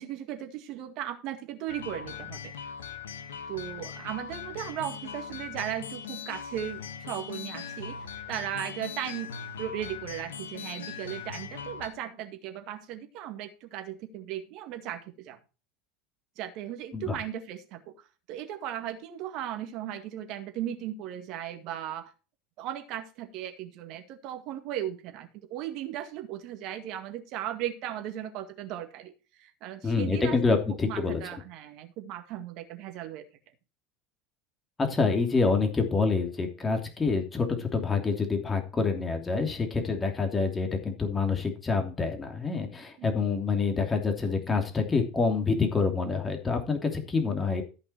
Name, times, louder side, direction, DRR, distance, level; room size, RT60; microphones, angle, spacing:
voice 1, 0.0-2.5 3.5-9.3 9.6-15.4 16.4-17.9 18.3-22.1 22.6-30.6 30.8-33.2 43.0-43.1, right 11 dB, 55° right, 7 dB, 2.0 m, -37 dB
sound 1, 1.7-11.9, left 7 dB, 75° left, 1.3 m, -40 dB
voice 2, 29.8-31.2 34.8-47.6, left 4 dB, 20° left, 4 dB, 2.9 m, -27 dB
14.0 x 5.9 x 4.6 m, 0.33 s
figure-of-eight pair, 75°, 0 cm